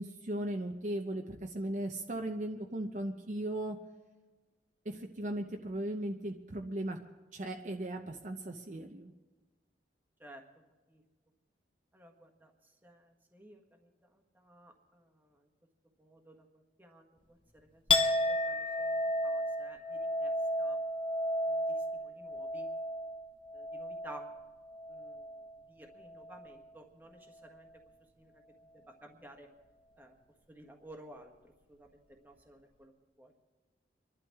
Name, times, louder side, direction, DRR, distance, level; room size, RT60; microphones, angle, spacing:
voice 1, 0.0-3.8 4.9-7.0 7.3-9.1, right 1 dB, 40° right, 3 dB, 0.7 m, -37 dB
voice 2, 11.9-15.5 16.0-17.8 18.3-20.3 20.6-20.8 21.5-22.7 23.5-24.2 24.9-27.7 28.2-28.4 28.7-29.5 30.0-30.2 30.5-31.3 31.7-32.9 33.2-33.3, right 1 dB, 10° right, 2 dB, 1.4 m, -55 dB
Chink clink, 17.9-25.6 25.9-26.6, left 1 dB, 30° left, 0.9 m, -33 dB
26.5 x 11.5 x 3.5 m, 1.2 s
head